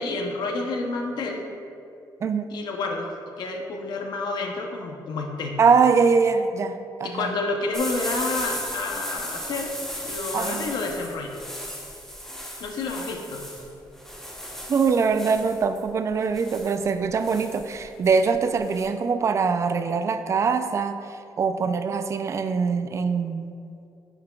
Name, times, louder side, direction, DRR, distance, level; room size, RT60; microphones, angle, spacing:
voice 1, 0.0-1.4 2.5-3.1 3.4-5.6 7.0-9.7 10.0-11.4 12.6-13.5, left 3 dB, 70° left, 2 dB, 0.8 m, -29 dB
voice 2, 5.6-7.3 10.3-10.7 14.7-23.5, right 5 dB, 40° right, 9 dB, 0.3 m, -23 dB
sound 1, 7.7-18.9, equal, 5° left, 0.9 m, -36 dB
9.9 x 5.8 x 2.3 m, 2.6 s
cardioid pair, 135°, 8 cm